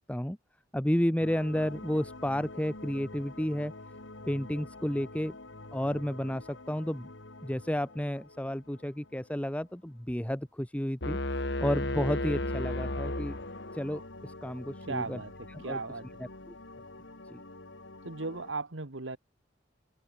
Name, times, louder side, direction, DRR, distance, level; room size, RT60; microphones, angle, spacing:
voice 1, 0.7-3.7 4.3-5.3 5.7-7.1 7.4-11.2 11.6-13.4 13.7-15.2 15.5-15.8 16.5-16.6 17.3-17.4, equal, 5° left, 1.1 m, -31 dB
sound 1, 1.2-10.2 11.4-18.5, left 2 dB, 85° left, 2.8 m, -48 dB
sound 2, 11.0-14.0, left 1 dB, 65° left, 2.6 m, -33 dB
voice 2, 14.9-16.2 18.0-19.2, right 3 dB, 85° right, 1.7 m, -37 dB
head